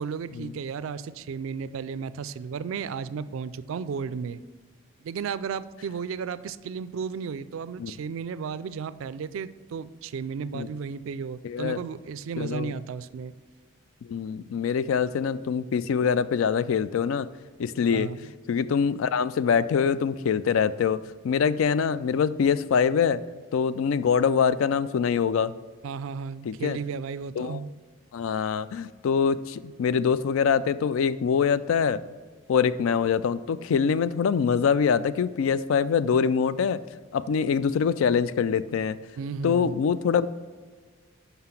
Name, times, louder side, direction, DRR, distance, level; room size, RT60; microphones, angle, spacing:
voice 1, 0.0-4.4 5.0-13.3 17.9-18.3 25.8-27.7 39.2-39.8, right 6 dB, 70° right, 15 dB, 0.3 m, -34 dB
voice 2, 11.4-11.8 12.4-12.7 14.0-17.3 17.6-18.1 18.5-23.2 23.5-25.5 26.4-26.8 27.4-27.6 28.1-32.0 32.5-36.8 37.1-39.0 39.4-40.3, left 6 dB, 70° left, 16 dB, 0.3 m, -24 dB
5.7 x 5.6 x 5.8 m, 1.5 s
head